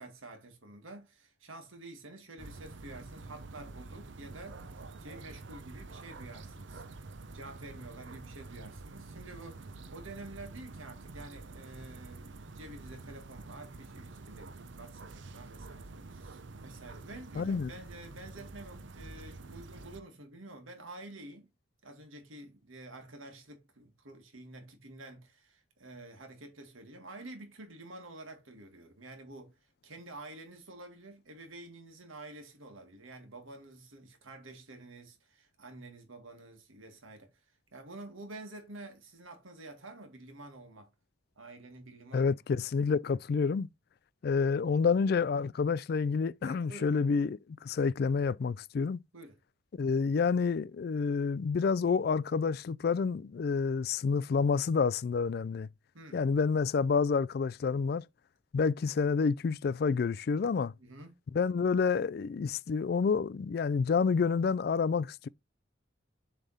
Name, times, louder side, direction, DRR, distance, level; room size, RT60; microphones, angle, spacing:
voice 1, 0.0-6.8 7.3-21.5 21.8-29.5 29.8-37.3 37.7-40.9 41.4-42.3 46.4-47.0 49.1-49.4 55.9-56.3 60.8-61.1, right 2 dB, 85° right, 2.0 m, -49 dB
sound 1, 2.4-20.0, right 3 dB, 65° right, 0.6 m, -48 dB
voice 2, 17.4-17.7 42.1-43.7 44.2-49.0 49.8-55.7 56.1-58.0 58.5-60.7 61.3-65.3, left 5 dB, 50° left, 0.3 m, -29 dB
7.2 x 3.5 x 4.1 m
head